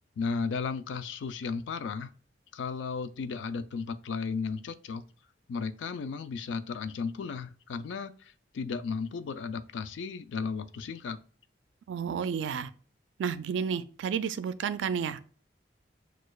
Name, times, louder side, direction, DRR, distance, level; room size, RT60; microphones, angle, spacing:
voice 1, 0.2-2.1 2.5-5.0 5.5-11.2, left 5 dB, 85° left, 0.4 m, -34 dB
voice 2, 11.9-12.7 13.2-15.3, right 7 dB, 85° right, 0.3 m, -31 dB
6.3 x 2.4 x 2.3 m
head